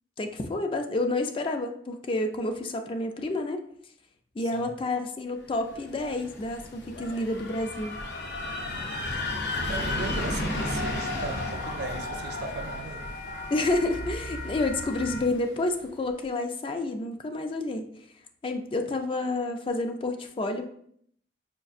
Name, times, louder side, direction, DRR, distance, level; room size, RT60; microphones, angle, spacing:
voice 1, 0.2-3.6 4.4-7.9 13.5-17.9 18.4-20.7, left 2 dB, 30° left, 0.3 m, -29 dB
sound 1, 5.7-15.5, left 2 dB, 65° left, 0.6 m, -34 dB
voice 2, 9.7-13.1, right 4 dB, 60° right, 0.4 m, -37 dB
sound 2, 9.8-15.2, left 2 dB, 85° left, 0.9 m, -39 dB
5.1 x 2.4 x 2.5 m
head